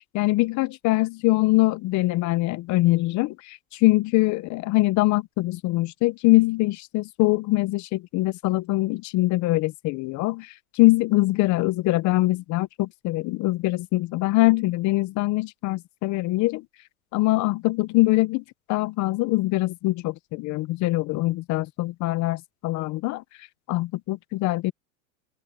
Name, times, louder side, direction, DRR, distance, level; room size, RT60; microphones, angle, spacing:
voice 1, 0.1-16.6 17.1-23.2 23.7-24.7, left 20 dB, 45° left, 0.9 m, -23 dB
open air
supercardioid pair, 115°, 42 cm